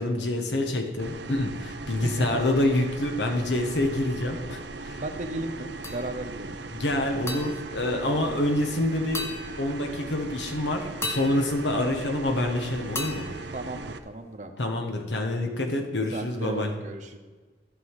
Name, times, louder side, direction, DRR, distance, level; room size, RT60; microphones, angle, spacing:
voice 1, 0.0-5.0 6.7-9.3 9.6-13.3 14.6-16.7, left 1 dB, 85° left, 4 dB, 1.3 m, -27 dB
sound 1, 1.0-14.0, right 3 dB, 80° right, 0.6 m, -39 dB
voice 2, 2.0-2.4 5.0-6.5 8.1-8.4 13.5-14.5 16.1-17.2, right 2 dB, 45° right, 6 dB, 0.9 m, -35 dB
sound 2, 5.8-6.4 7.3-8.7 9.1-10.2 11.0-12.5 13.0-14.4, left 1 dB, 15° left, 0.9 m, -38 dB
13.5 x 5.6 x 4.8 m, 1.3 s
head